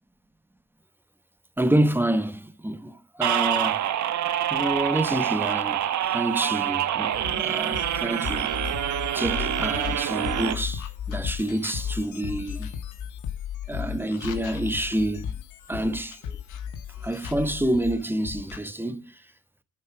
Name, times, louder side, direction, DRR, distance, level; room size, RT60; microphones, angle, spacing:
voice 1, 1.6-3.8 4.5-8.5 9.1-12.7 13.7-15.3 15.7-16.4 17.0-19.1, right 1 dB, 5° right, 1.0 m, -28 dB
sound 1, 3.2-10.5, right 11 dB, 70° right, 1.1 m, -26 dB
sound 2, 7.1-18.6, left 8 dB, 80° left, 1.4 m, -35 dB
8.0 x 5.5 x 4.7 m
cardioid pair, 90°, 30 cm